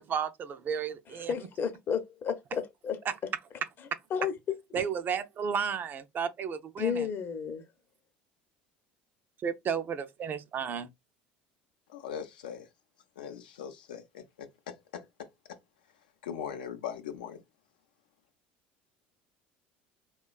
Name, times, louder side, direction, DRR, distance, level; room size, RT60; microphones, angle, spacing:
voice 1, 0.0-1.3 3.9-4.0 4.7-7.1 9.4-10.9, right 7 dB, 40° right, 0.4 m, -33 dB
voice 2, 1.3-3.0 4.1-4.8 6.8-7.6, left 7 dB, 45° left, 0.6 m, -32 dB
voice 3, 11.9-12.7 13.2-15.3 16.2-17.4, left 8 dB, 90° left, 0.5 m, -40 dB
3.0 x 2.2 x 2.3 m
hypercardioid pair, 80°, 5 cm